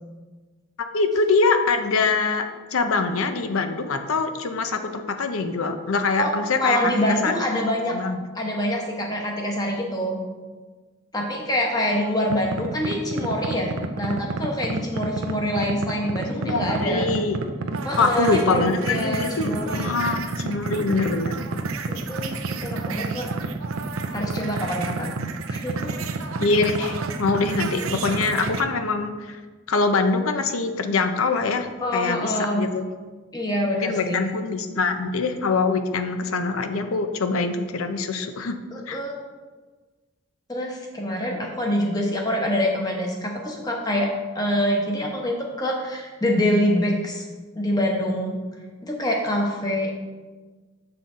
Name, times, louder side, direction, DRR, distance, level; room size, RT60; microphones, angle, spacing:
voice 1, 0.9-2.5 2.7-6.9 7.2-7.3 7.9-8.2 16.3-17.4 18.0-21.4 26.4-29.4 29.7-31.7 31.9-32.9 33.7-38.6 38.9-39.0, left 4 dB, 90° left, 7 dB, 0.6 m, -24 dB
voice 2, 6.6-8.0 8.3-10.2 11.1-17.1 17.8-19.9 21.9-23.3 24.1-25.1 25.5-25.9 31.8-32.7 33.3-34.2 38.7-39.1 40.5-47.3 47.5-48.4 48.8-50.0, equal, 20° left, 0 dB, 1.0 m, -25 dB
sound 1, 12.3-28.6, right 3 dB, 85° right, 0.5 m, -29 dB
7.0 x 5.9 x 3.7 m, 1.4 s
head